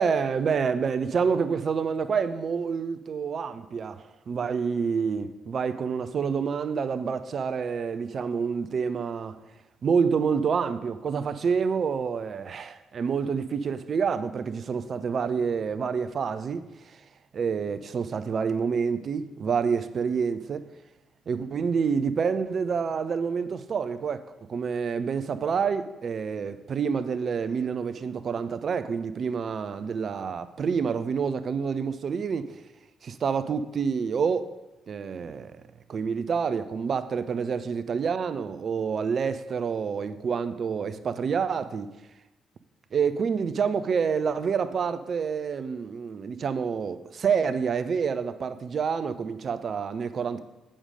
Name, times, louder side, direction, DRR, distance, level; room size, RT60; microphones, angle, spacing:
voice 1, 0.0-9.4 9.8-16.6 17.3-20.6 21.3-24.2 24.5-32.4 33.0-34.5 34.9-35.5 35.9-41.9 42.9-50.4, right 6 dB, 50° right, 0.5 m, -28 dB
8.7 x 6.4 x 5.1 m
figure-of-eight pair, 40°, 0 cm